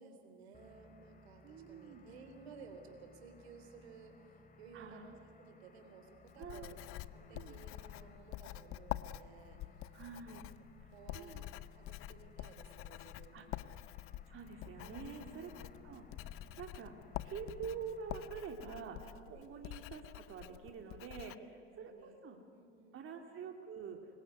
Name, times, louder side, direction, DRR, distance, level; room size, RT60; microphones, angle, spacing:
voice 1, 0.0-10.0 10.9-13.8 14.8-15.7 19.3-19.5 21.3-21.5 21.8-22.2 22.5-23.1, right 4 dB, 70° right, 6 dB, 3.6 m, -57 dB
sound 1, 0.5-18.3, left 3 dB, 25° left, 3.0 m, -62 dB
voice 2, 1.4-2.0 4.7-5.1 6.4-6.7 7.3-7.5 9.9-10.5 10.8-10.9 11.1-11.4 13.3-13.4 14.3-15.5 15.8-16.0 16.6-16.9 17.2-21.3 21.8-22.4 22.9-24.0, right 6 dB, 40° right, 4 dB, 2.6 m, -46 dB
Writing, 6.3-21.4, left 15 dB, 40° left, 0.7 m, -47 dB
25.0 x 21.0 x 9.6 m, 2.4 s
figure-of-eight pair, 70°, 33 cm